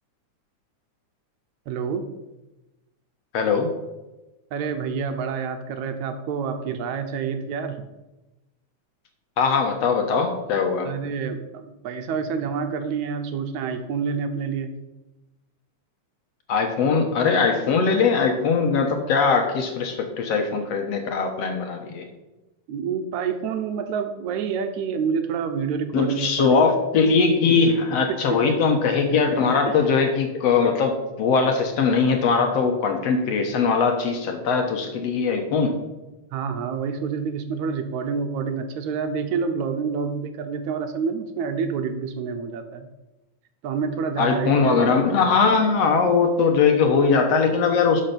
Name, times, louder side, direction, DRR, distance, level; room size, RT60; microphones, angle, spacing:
voice 1, 1.7-2.1 4.5-7.8 10.8-14.7 22.7-26.6 28.1-28.5 29.7-29.8 36.3-42.9 43.6-44.8, right 6 dB, 75° right, 7 dB, 2.1 m, -28 dB
voice 2, 3.3-3.7 9.4-10.9 16.5-22.1 25.9-35.8 44.2-48.0, left 5 dB, 65° left, 4 dB, 2.0 m, -21 dB
12.0 x 5.4 x 5.9 m, 1.0 s
omnidirectional pair, 3.5 m